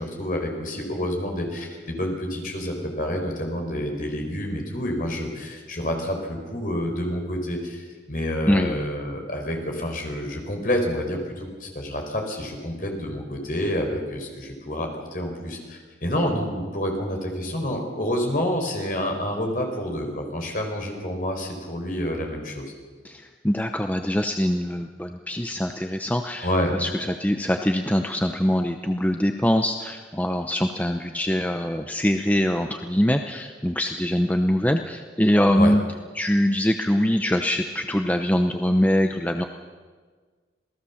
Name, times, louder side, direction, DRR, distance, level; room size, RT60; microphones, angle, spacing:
voice 1, 0.0-22.7 26.4-26.7 35.5-35.8, equal, 45° left, 2 dB, 4.8 m, -28 dB
voice 2, 8.5-8.8 23.0-26.5 26.8-35.8 36.2-39.4, equal, 10° left, 5 dB, 0.8 m, -23 dB
27.0 x 18.0 x 7.2 m, 1.5 s
head